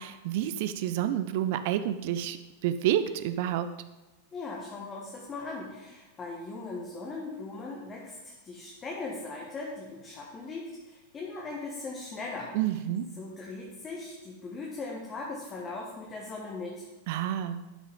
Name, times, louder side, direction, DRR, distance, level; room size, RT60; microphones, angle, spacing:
voice 1, 0.0-2.4 2.6-3.8 12.5-13.1 17.1-17.7, right 11 dB, 50° right, 12 dB, 0.4 m, -29 dB
voice 2, 4.3-12.5 13.2-16.9, left 3 dB, 25° left, -2 dB, 1.6 m, -39 dB
12.5 x 6.3 x 3.8 m, 1.1 s
figure-of-eight pair, 90°, 0 cm